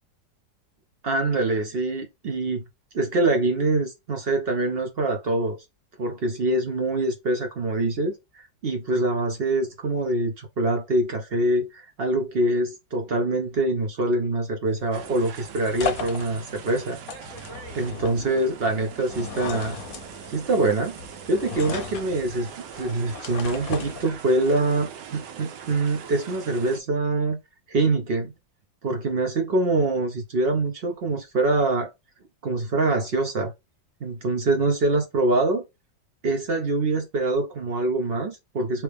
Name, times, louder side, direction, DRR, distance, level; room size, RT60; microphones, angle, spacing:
voice 1, 1.0-2.6 2.9-5.6 6.0-17.0 17.7-19.8 20.3-21.0 21.3-22.5 22.8-27.4 27.7-28.3 28.8-31.9 32.4-33.5 34.0-35.6 36.2-38.8, right 2 dB, 60° right, 0.6 m, -24 dB
sound 1, 14.7-24.5, left 6 dB, 65° left, 1.0 m, -37 dB
sound 2, 14.9-26.8, right 7 dB, 80° right, 1.3 m, -41 dB
3.0 x 3.0 x 3.3 m
omnidirectional pair, 1.9 m